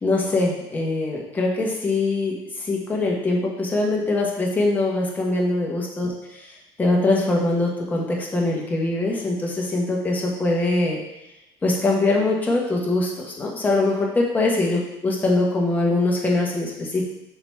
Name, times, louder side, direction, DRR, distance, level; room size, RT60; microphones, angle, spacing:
voice 1, 0.0-6.5 6.8-11.0 11.6-17.0, left 2 dB, 15° left, -2 dB, 1.2 m, -22 dB
4.6 x 3.9 x 5.6 m, 0.94 s
cardioid pair, 150°, 11 cm